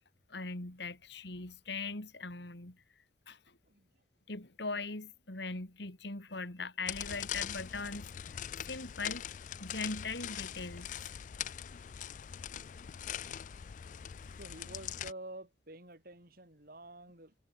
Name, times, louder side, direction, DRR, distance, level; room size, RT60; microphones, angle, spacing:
voice 1, 0.3-2.8 3.3-3.6 4.3-9.2 9.6-10.9, left 3 dB, 60° left, 2.7 m, -40 dB
voice 2, 3.6-4.0 14.4-17.3, right 1 dB, 50° right, 3.8 m, -49 dB
sound 1, 6.9-15.1, left 10 dB, 40° left, 0.3 m, -42 dB
head